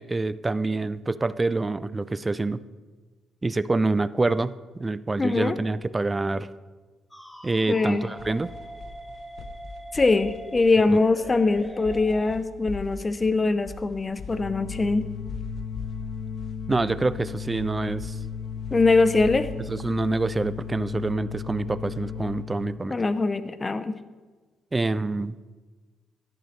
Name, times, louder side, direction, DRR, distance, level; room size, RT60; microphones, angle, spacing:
voice 1, 0.0-2.6 3.4-6.5 7.4-8.5 16.7-18.2 19.7-23.0 24.7-25.3, right 3 dB, 20° right, 16 dB, 0.4 m, -26 dB
voice 2, 5.2-5.6 7.7-8.1 9.9-15.1 18.7-19.5 22.9-24.0, left 3 dB, 25° left, 13 dB, 0.6 m, -22 dB
sound 1, 7.1-12.4, equal, 10° left, 1.1 m, -42 dB
sound 2, 7.9-21.1, left 4 dB, 60° left, 0.8 m, -42 dB
sound 3, 14.3-22.4, left 7 dB, 80° left, 2.1 m, -35 dB
11.5 x 10.5 x 3.2 m, 1.3 s
cardioid pair, 90°, 0 cm